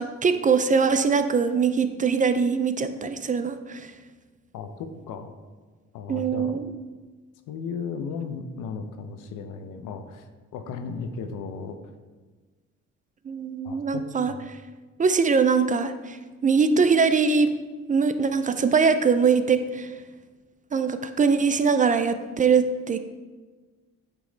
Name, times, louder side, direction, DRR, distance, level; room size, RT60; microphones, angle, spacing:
voice 1, 0.0-3.9 6.1-6.7 13.3-14.6 15.0-17.5 17.9-19.9 20.7-23.0, right 5 dB, 25° right, 10 dB, 0.3 m, -22 dB
voice 2, 4.5-5.4 5.9-6.5 7.5-11.8 13.6-14.4, left 5 dB, 90° left, 8 dB, 0.6 m, -35 dB
8.2 x 3.1 x 3.8 m, 1.4 s
cardioid pair, 90°, 30 cm